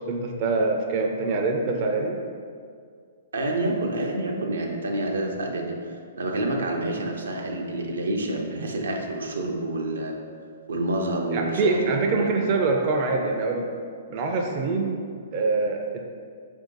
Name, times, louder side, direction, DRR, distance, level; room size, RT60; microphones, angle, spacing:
voice 1, 0.1-2.2 11.3-13.7 14.1-15.0 15.3-16.0, right 3 dB, 40° right, 1 dB, 0.4 m, -24 dB
voice 2, 3.3-10.1 10.7-12.4, right 1 dB, 85° right, 1 dB, 0.6 m, -28 dB
4.5 x 2.7 x 3.8 m, 2.1 s
hypercardioid pair, 130°, 0 cm